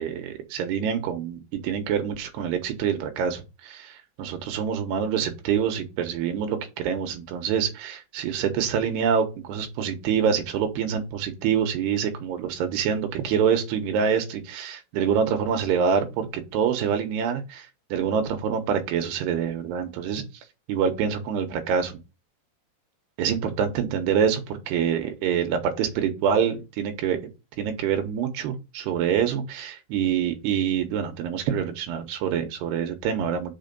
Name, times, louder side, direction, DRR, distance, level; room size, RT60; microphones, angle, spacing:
voice 1, 0.0-20.2 20.7-22.0 23.2-27.2 27.6-33.5, right 7 dB, 80° right, 6 dB, 3.3 m, -26 dB
6.2 x 5.1 x 5.3 m, 0.27 s
omnidirectional pair, 4.7 m